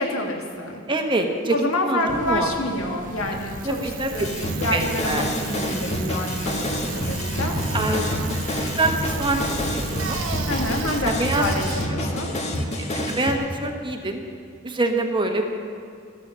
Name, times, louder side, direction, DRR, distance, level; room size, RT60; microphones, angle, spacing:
voice 1, 0.0-0.8 1.5-8.2 10.5-12.3, left 1 dB, 75° left, 2 dB, 1.9 m, -28 dB
voice 2, 0.9-2.5 3.6-4.1 4.7-5.3 7.7-10.2 10.9-11.4 12.8-14.2 14.6-15.5, right 2 dB, 25° right, 3 dB, 1.2 m, -25 dB
sound 1, 2.1-11.8, right 1 dB, 40° right, 0.8 m, -36 dB
Bicycle, 3.1-13.2, right 7 dB, 65° right, 1.1 m, -37 dB
sound 2, 4.2-13.3, left 1 dB, 30° left, 1.4 m, -28 dB
14.0 x 13.5 x 5.6 m, 2.5 s
head